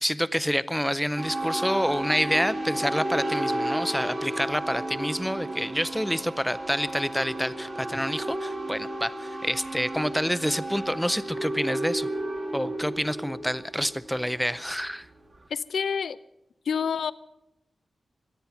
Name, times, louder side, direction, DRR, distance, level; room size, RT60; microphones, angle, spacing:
voice 1, 0.0-12.1 12.5-15.1, equal, ahead, 15 dB, 0.5 m, -28 dB
sound 1, 1.2-15.4, right 1 dB, 40° right, 2.0 m, -33 dB
Wind instrument woodwind instrument, 3.1-8.0, right 3 dB, 60° right, 1.2 m, -49 dB
voice 2, 15.5-16.2 16.7-17.1, left 6 dB, 90° left, 16 dB, 0.5 m, -27 dB
24.5 x 9.6 x 5.8 m, 0.86 s
wide cardioid pair, 155°, 0 cm